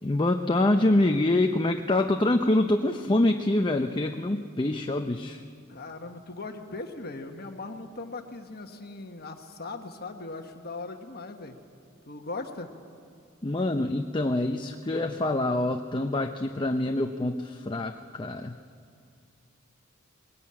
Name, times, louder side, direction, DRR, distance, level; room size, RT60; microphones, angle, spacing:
voice 1, 0.0-5.4 13.4-18.5, left 2 dB, 20° left, 5 dB, 0.6 m, -25 dB
voice 2, 5.7-11.6 12.1-12.7, left 3 dB, 45° left, 5 dB, 1.3 m, -39 dB
21.5 x 18.5 x 8.7 m, 2.5 s
head